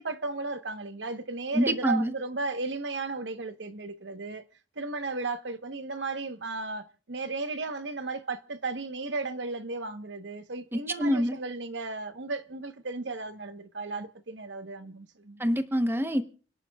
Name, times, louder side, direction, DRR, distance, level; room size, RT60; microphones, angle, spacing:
voice 1, 0.0-4.4 4.8-15.4, right 3 dB, 85° right, 1.1 m, -35 dB
voice 2, 1.5-2.1 10.7-11.4 15.4-16.2, equal, 15° right, 0.9 m, -26 dB
29.5 x 11.0 x 2.3 m
head